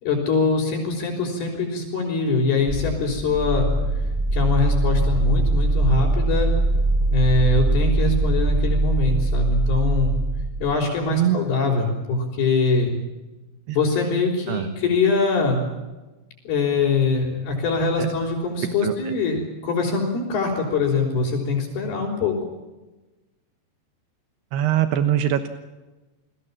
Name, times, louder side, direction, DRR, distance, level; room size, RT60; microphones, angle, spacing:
voice 1, 0.0-3.7 4.3-6.5 7.1-10.2 10.6-13.0 13.7-15.6 16.4-22.3, left 3 dB, 65° left, -5 dB, 6.6 m, -23 dB
sound 1, 2.7-10.9, right 2 dB, 10° right, 3.7 m, -22 dB
voice 2, 18.8-19.1 24.5-25.5, right 11 dB, 80° right, 9 dB, 3.3 m, -22 dB
29.5 x 20.5 x 7.4 m, 1.1 s
omnidirectional pair, 4.8 m